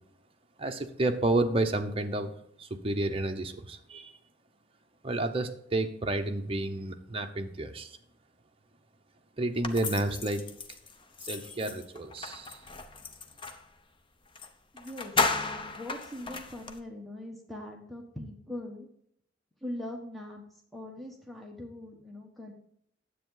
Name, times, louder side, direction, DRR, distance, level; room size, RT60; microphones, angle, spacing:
voice 1, 0.6-2.3 2.6-4.2 5.0-8.0 9.4-10.4 11.2-12.6, right 2 dB, 30° right, 4 dB, 0.9 m, -30 dB
sound 1, 9.6-13.7 14.4-14.5 14.8-16.8, left 4 dB, 25° left, 0.7 m, -34 dB
voice 2, 14.7-18.9 19.6-20.4 20.7-22.5, left 1 dB, ahead, 0 dB, 1.3 m, -41 dB
10.0 x 8.0 x 3.9 m, 0.70 s
head